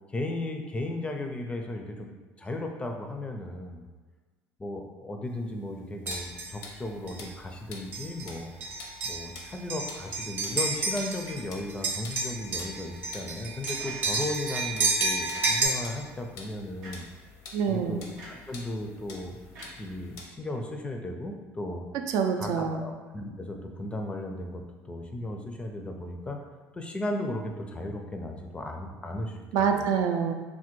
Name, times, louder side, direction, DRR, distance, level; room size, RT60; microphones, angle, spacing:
voice 1, 0.1-3.8 4.6-8.5 9.0-17.0 17.7-19.4 19.7-21.9 22.4-26.4 26.7-29.4 29.8-29.9, left 1 dB, 15° left, 3 dB, 0.4 m, -35 dB
sound 1, 6.0-20.2, left 4 dB, 80° left, 0.6 m, -48 dB
sound 2, 6.1-6.6 7.1-7.2 7.9-8.3 8.6-11.4 11.7-15.7, right 3 dB, 35° right, 0.7 m, -30 dB
sound 3, 13.8-14.4 15.3-16.0 16.8-17.2 18.2-18.6 19.5-20.4, right 1 dB, 85° right, 0.8 m, -47 dB
voice 2, 17.5-18.0 22.1-22.9 29.5-30.3, right 7 dB, 65° right, 5 dB, 0.3 m, -26 dB
3.3 x 2.1 x 3.0 m, 1.3 s
supercardioid pair, 100°, 6 cm